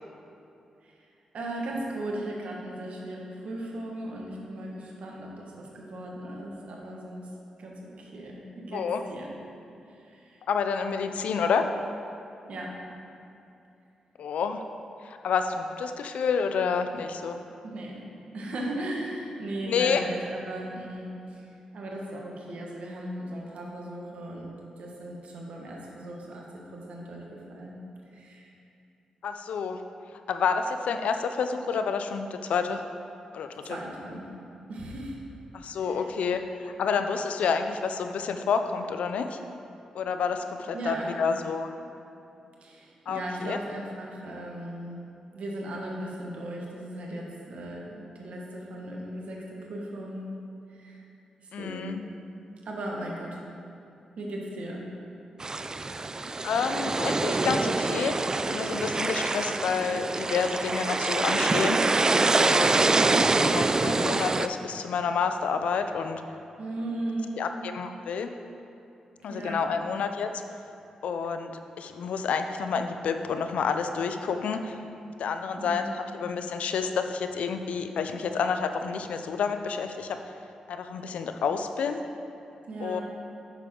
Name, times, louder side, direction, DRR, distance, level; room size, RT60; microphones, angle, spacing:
voice 1, 1.3-7.2 7.6-8.8 9.1-9.3 10.0-10.4 12.5-12.7 17.6-18.0 18.3-21.4 21.7-24.5 24.8-26.4 26.7-27.2 27.5-27.8 28.1-28.5 33.7-34.3 34.7-35.2 35.8-36.0 40.7-41.2 42.6-45.0 45.3-50.3 50.7-51.0 51.4-51.9 52.6-53.3 54.2-54.9 55.5-55.7 66.6-67.3 69.3-69.7 75.6-75.9 82.7-83.0, right 1 dB, 70° right, -2 dB, 1.5 m, -37 dB
voice 2, 8.7-9.0 10.5-11.7 14.2-14.6 15.0-17.4 19.7-20.1 29.2-29.8 30.3-32.8 33.3-33.8 35.5-39.4 39.9-41.7 43.1-43.6 51.5-52.0 56.4-58.2 58.5-61.8 62.4-66.2 67.4-68.3 69.2-70.4 71.0-74.8 75.2-80.2 80.7-82.1 82.8-83.0, left 6 dB, 80° left, 7 dB, 0.5 m, -29 dB
sound 1, 55.4-64.5, right 3 dB, 30° right, 0.3 m, -25 dB
8.8 x 6.5 x 3.8 m, 2.7 s
cardioid pair, 60°, 2 cm